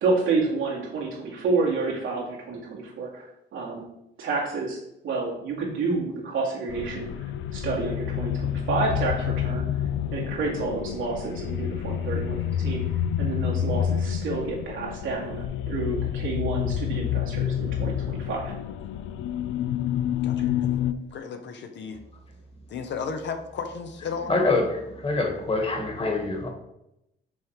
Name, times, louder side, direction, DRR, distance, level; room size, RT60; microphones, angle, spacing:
voice 1, 0.0-3.8 4.2-4.8 5.0-7.1 7.5-9.7 10.1-18.5, right 3 dB, 80° right, -3 dB, 2.1 m, -29 dB
sound 1, 6.7-20.9, left 10 dB, 80° left, 0.4 m, -28 dB
voice 2, 20.2-20.7 21.1-22.0 22.7-24.6, left 5 dB, 65° left, 6 dB, 0.9 m, -34 dB
voice 3, 24.3-26.5, left 3 dB, 30° left, 3 dB, 1.6 m, -25 dB
6.2 x 3.7 x 4.7 m, 0.83 s
cardioid pair, 90°, 20 cm